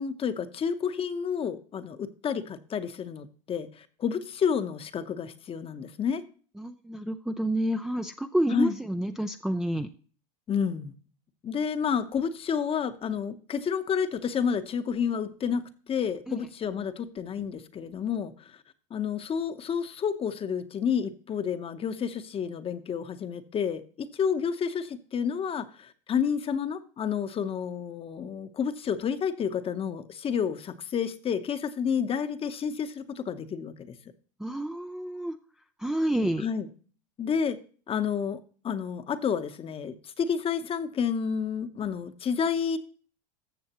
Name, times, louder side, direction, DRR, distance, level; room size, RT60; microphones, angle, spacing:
voice 1, 0.0-6.2 8.5-8.8 10.5-10.9 11.4-18.5 18.9-33.9 36.4-36.7 37.2-37.6 37.9-38.4 38.6-42.8, left 7 dB, 30° left, 0.9 m, -30 dB
voice 2, 6.6-9.9 16.3-16.4 34.4-35.4 35.8-36.5, right 1 dB, 5° right, 0.4 m, -29 dB
13.5 x 6.9 x 2.9 m
hypercardioid pair, 105°, 20 cm